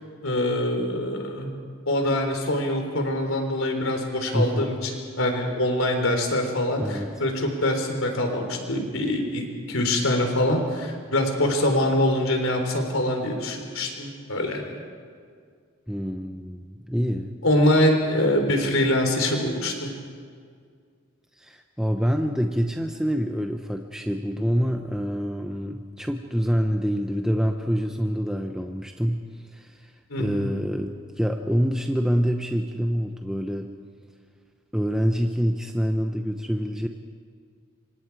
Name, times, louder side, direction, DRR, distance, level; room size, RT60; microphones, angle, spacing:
voice 1, 0.2-1.5 1.9-14.6 17.4-19.9 30.1-30.4, left 1 dB, 75° left, 4 dB, 3.8 m, -24 dB
voice 2, 4.3-4.8 6.8-7.1 15.9-17.4 21.4-29.9 30.2-33.7 34.7-36.9, equal, 5° right, 4 dB, 0.7 m, -26 dB
26.5 x 25.5 x 4.8 m, 2.1 s
head